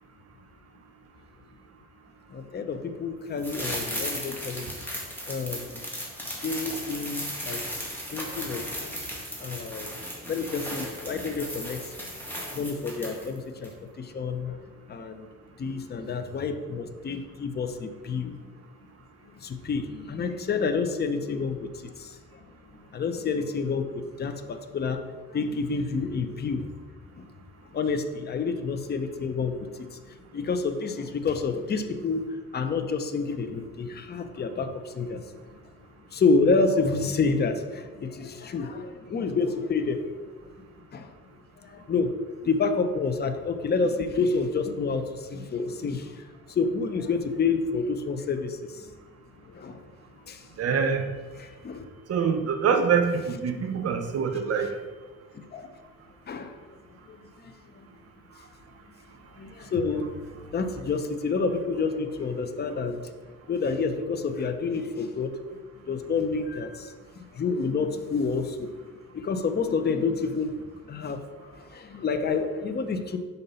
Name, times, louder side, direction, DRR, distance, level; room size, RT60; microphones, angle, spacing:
voice 1, 2.3-4.7 5.3-5.8 6.4-7.6 8.1-8.6 9.4-9.9 10.3-11.9 12.5-14.6 14.9-15.3 15.6-18.3 19.4-22.2 22.9-25.0 25.3-26.7 27.1-27.3 27.7-35.3 36.1-40.1 40.9-41.1 41.6-42.2 42.4-48.9 49.5-49.8 50.3-50.5 51.4-51.9 55.3-55.7 56.3-56.6 57.1-57.8 59.4-60.1 60.5-63.0 63.5-65.3 65.8-68.7 69.1-70.6 70.8-71.2 71.5-73.2, left 4 dB, 35° left, 8 dB, 0.6 m, -29 dB
sound 1, 3.4-13.4 13.6-13.7, equal, 5° left, 1.7 m, -36 dB
voice 2, 50.6-51.0 52.1-54.7, right 6 dB, 55° right, 6 dB, 0.7 m, -25 dB
5.5 x 4.0 x 5.5 m, 1.4 s
cardioid pair, 90°, 30 cm